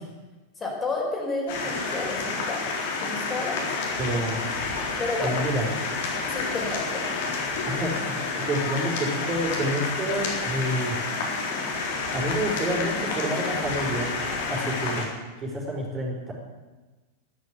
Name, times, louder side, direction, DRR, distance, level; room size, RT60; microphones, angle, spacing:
voice 1, 0.6-2.6 3.0-3.9 5.0-5.4 6.3-7.0, left 2 dB, 20° left, -1 dB, 5.0 m, -31 dB
sound 1, 1.5-15.0, left 4 dB, 55° left, 4.1 m, -29 dB
voice 2, 4.0-4.5 5.2-5.7 7.7-11.0 12.1-14.2 14.5-15.1 15.4-16.3, right 1 dB, 25° right, -2 dB, 5.4 m, -28 dB
13.5 x 11.5 x 8.5 m, 1.2 s
figure-of-eight pair, 90°, 0 cm